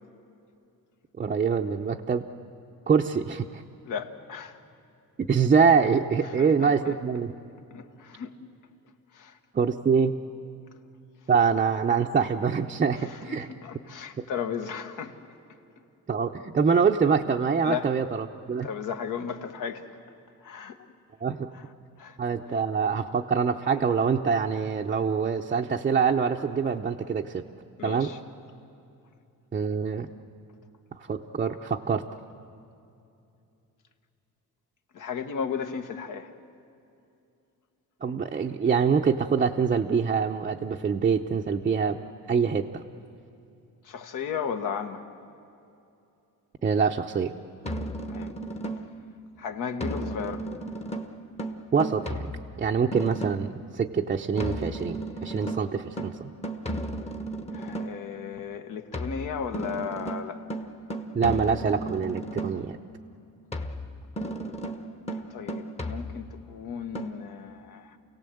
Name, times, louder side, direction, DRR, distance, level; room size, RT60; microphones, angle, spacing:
voice 1, 1.2-2.2 2.9-3.6 5.2-7.3 9.5-10.1 11.3-13.5 16.1-18.7 21.2-21.5 22.2-27.4 27.8-28.1 29.5-30.1 31.0-32.0 38.0-42.0 42.3-42.8 46.6-47.3 51.7-56.3 61.1-62.8, right 6 dB, 25° right, 0 dB, 0.6 m, -25 dB
voice 2, 3.8-4.6 6.4-6.9 7.7-8.3 9.1-9.4 13.0-15.2 17.6-17.9 18.6-19.8 20.4-20.9 21.5-21.6 22.0-22.2 27.8-28.2 34.9-36.3 43.8-45.0 48.0-48.3 49.4-50.5 57.5-60.4 65.3-68.0, left 7 dB, 65° left, 7 dB, 1.5 m, -35 dB
sound 1, 47.6-49.1 49.8-53.6 54.4-58.1 58.9-62.8 63.5-66.5 66.9-67.1, right 1 dB, 20° left, 1.1 m, -34 dB
28.5 x 17.5 x 7.9 m, 2.7 s
cardioid pair, 140°, 34 cm